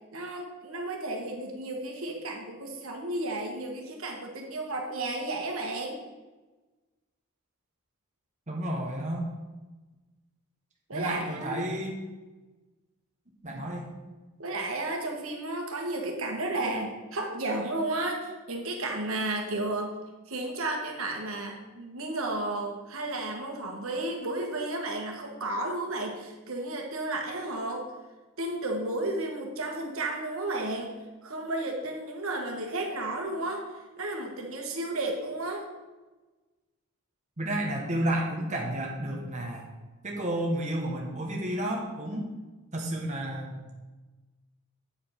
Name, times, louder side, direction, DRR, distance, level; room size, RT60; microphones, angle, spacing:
voice 1, 0.1-6.0 10.9-11.7 14.4-20.0 20.3-27.8 28.4-30.9 31.2-33.6 34.0-35.7, right 2 dB, 70° right, 2 dB, 1.5 m, -33 dB
voice 2, 8.5-9.3 10.9-12.0 13.4-13.9 37.4-39.7 40.0-42.2 42.7-43.6, right 1 dB, 35° right, -1 dB, 1.2 m, -31 dB
8.6 x 5.1 x 5.7 m, 1.2 s
head